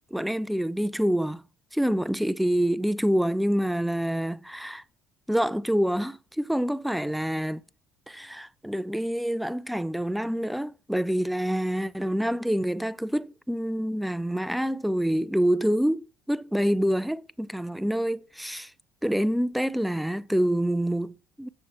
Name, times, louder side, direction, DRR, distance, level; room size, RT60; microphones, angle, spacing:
voice 1, 0.0-1.4 1.7-4.8 5.3-7.6 8.1-18.7 19.0-21.5, equal, ahead, 0.3 m, -27 dB
7.1 x 6.7 x 3.0 m
supercardioid pair, 90°, 0 cm